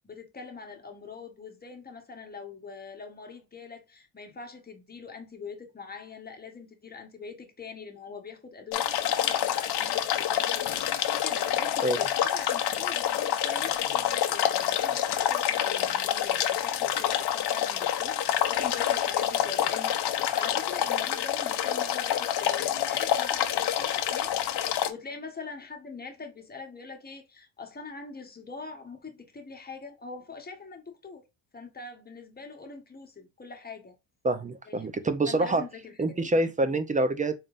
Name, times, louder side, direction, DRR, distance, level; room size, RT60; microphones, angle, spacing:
voice 1, 0.0-10.7 11.0-24.4 24.9-31.2 31.5-33.9 34.7-35.0 35.3-36.2, left 4 dB, 20° left, 1.1 m, -43 dB
sound 1, 8.7-24.9, left 11 dB, 50° left, 0.7 m, -27 dB
voice 2, 34.2-35.6 36.0-37.3, right 2 dB, 15° right, 0.4 m, -26 dB
4.1 x 3.6 x 2.4 m
cardioid pair, 110°, 50 cm